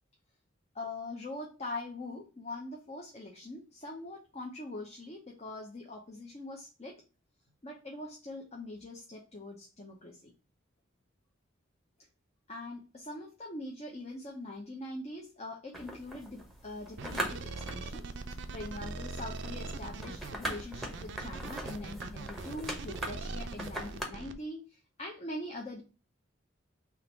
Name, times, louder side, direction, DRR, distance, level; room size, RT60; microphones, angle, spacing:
voice 1, 0.7-7.0 7.6-10.3 12.5-18.1 18.5-25.8, left 2 dB, 35° left, -1 dB, 0.9 m, -43 dB
sound 1, 15.7-24.0, right 1 dB, ahead, 0.9 m, -42 dB
sound 2, 17.0-24.3, right 3 dB, 65° right, 0.5 m, -41 dB
3.7 x 3.0 x 4.4 m, 0.33 s
head